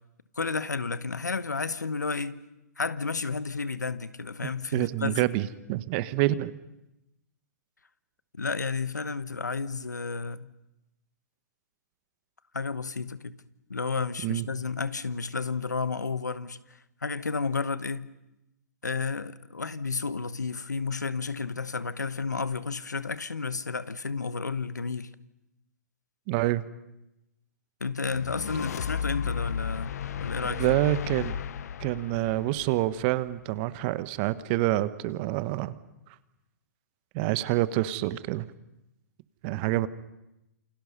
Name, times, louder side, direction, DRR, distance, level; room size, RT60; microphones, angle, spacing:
voice 1, 0.4-2.4 2.8-5.2 8.3-10.5 12.5-13.4 13.7-16.6 17.0-18.1 18.8-25.1 27.8-30.6, left 4 dB, 90° left, 1.1 m, -32 dB
voice 2, 4.4-6.5 14.2-14.5 26.3-26.6 30.5-31.4 31.8-35.8 37.1-38.5 39.4-39.9, right 16 dB, 40° right, 1.1 m, -27 dB
sound 1, 28.1-33.4, left 8 dB, 65° left, 0.9 m, -34 dB
28.5 x 26.0 x 5.5 m
hypercardioid pair, 120°, 9 cm